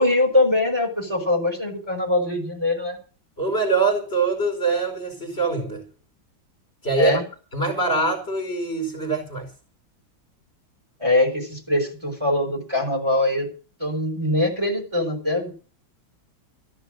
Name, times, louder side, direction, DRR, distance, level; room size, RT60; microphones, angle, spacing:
voice 1, 0.0-3.0 7.0-7.3 11.0-13.5 13.8-15.5, left 2 dB, 15° right, 5.2 m, -22 dB
voice 2, 3.4-5.8 6.8-7.2 7.5-9.5, right 3 dB, 30° left, 5.0 m, -24 dB
14.5 x 10.5 x 6.5 m
omnidirectional pair, 2.2 m